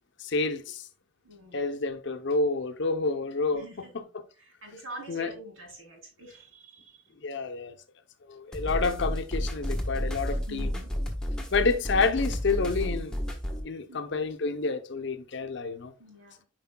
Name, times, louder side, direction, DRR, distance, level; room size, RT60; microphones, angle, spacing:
voice 1, 0.2-0.8 1.5-3.6 5.1-5.3 7.2-7.7 8.3-10.7 11.5-13.2 13.6-15.9, left 3 dB, 65° left, 0.7 m, -29 dB
voice 2, 1.2-1.7 3.5-3.9 4.3-7.2 10.5-11.0 13.9-14.0 16.0-16.4, equal, 80° right, 3.2 m, -46 dB
sound 1, 8.5-13.6, equal, 5° left, 1.1 m, -31 dB
9.5 x 4.9 x 2.2 m
head